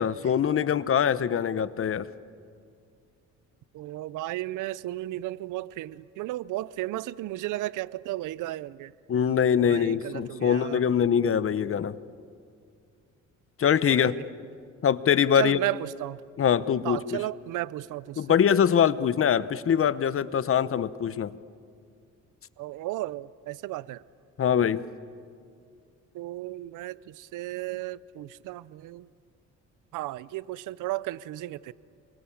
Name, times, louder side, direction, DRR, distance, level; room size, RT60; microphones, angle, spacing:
voice 1, 0.0-2.1 9.1-11.9 13.6-14.2 14.8-15.6 16.4-17.2 18.2-21.3 24.4-24.8, left 8 dB, 45° left, 0.9 m, -23 dB
voice 2, 3.7-8.9 9.6-10.8 13.9-14.3 15.3-16.2 16.8-18.4 22.6-24.0 26.1-29.1 29.9-31.7, right 16 dB, 90° right, 0.7 m, -34 dB
27.5 x 24.0 x 8.8 m
cardioid pair, 90°, 30 cm